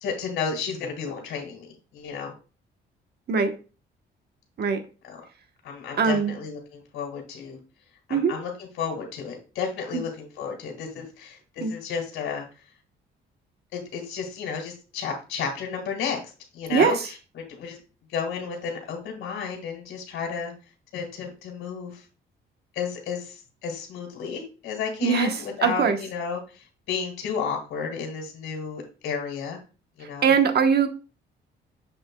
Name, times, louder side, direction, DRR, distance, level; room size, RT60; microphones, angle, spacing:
voice 1, 0.0-1.7 1.9-2.3 5.0-5.2 5.6-7.6 8.1-12.4 13.7-16.2 16.5-17.8 18.1-20.5 20.9-22.0 22.8-29.6 30.0-30.4, left 6 dB, 80° left, 1.9 m, -32 dB
voice 2, 6.0-6.3 8.1-8.3 9.9-10.0 11.6-11.7 16.7-17.1 25.0-26.0 30.2-30.9, right 6 dB, 55° right, 1.1 m, -21 dB
7.0 x 6.7 x 2.3 m
cardioid pair, 90°, 20 cm